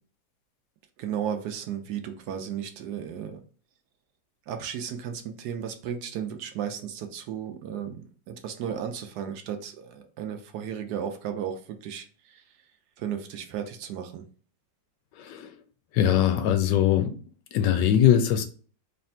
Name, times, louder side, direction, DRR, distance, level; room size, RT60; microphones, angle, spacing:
voice 1, 1.0-3.4 4.5-12.1 13.0-14.2, right 8 dB, 75° right, 6 dB, 1.1 m, -34 dB
voice 2, 15.2-15.5 15.9-17.1 17.5-18.4, left 10 dB, 85° left, 9 dB, 1.2 m, -21 dB
3.3 x 2.5 x 4.2 m, 0.40 s
omnidirectional pair, 1.9 m